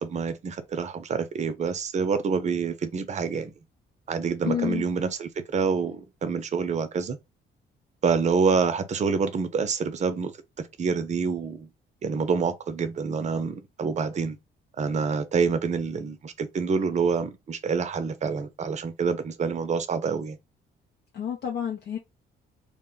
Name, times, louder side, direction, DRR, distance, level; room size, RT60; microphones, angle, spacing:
voice 1, 0.0-3.5 4.1-7.2 8.0-10.3 10.8-11.7 12.0-14.4 14.8-20.4, right 5 dB, 35° right, 0.5 m, -27 dB
voice 2, 4.4-4.9 21.1-22.0, left 8 dB, 60° left, 0.6 m, -29 dB
2.2 x 2.1 x 3.7 m
cardioid pair, 90°, 20 cm